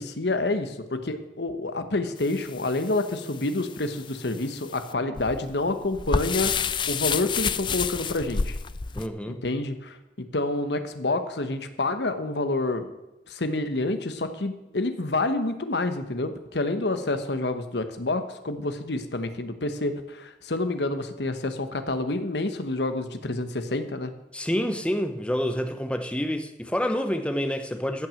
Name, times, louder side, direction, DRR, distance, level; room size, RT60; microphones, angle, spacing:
voice 1, 0.0-8.5 9.3-12.9 13.3-24.1, left 2 dB, 75° left, 1.2 m, -28 dB
sound 1, 2.2-9.1, left 6 dB, 25° left, 0.4 m, -30 dB
voice 2, 8.9-9.4 24.3-28.1, equal, 5° left, 0.8 m, -28 dB
14.0 x 6.1 x 7.7 m
head